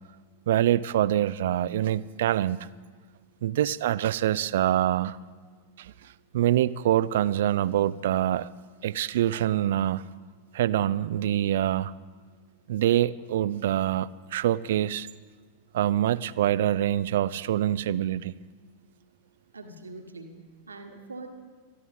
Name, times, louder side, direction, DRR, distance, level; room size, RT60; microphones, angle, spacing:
voice 1, 0.5-2.6 3.4-5.2 5.8-5.9 6.3-8.5 8.8-10.0 10.5-11.9 12.7-15.1 15.7-18.3, right 12 dB, 55° right, 19 dB, 0.4 m, -25 dB
voice 2, 19.5-21.3, right 3 dB, 75° right, 5 dB, 1.6 m, -43 dB
23.0 x 14.0 x 3.7 m, 1.5 s
figure-of-eight pair, 90°, 0 cm